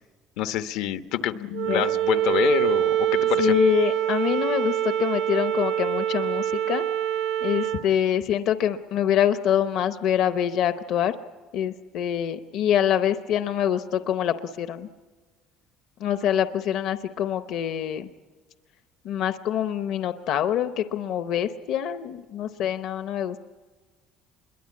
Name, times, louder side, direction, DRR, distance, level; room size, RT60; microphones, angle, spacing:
voice 1, 0.4-3.5, left 12 dB, 80° left, 9 dB, 1.0 m, -27 dB
voice 2, 1.5-1.9 3.4-6.8 7.4-11.1 11.5-14.9 16.0-18.1 19.0-23.4, left 10 dB, 55° left, 10 dB, 0.7 m, -25 dB
Wind instrument woodwind instrument, 1.5-7.8, right 12 dB, 85° right, 0.9 m, -25 dB
27.0 x 22.0 x 8.5 m, 1.4 s
cardioid pair, 175°, 0 cm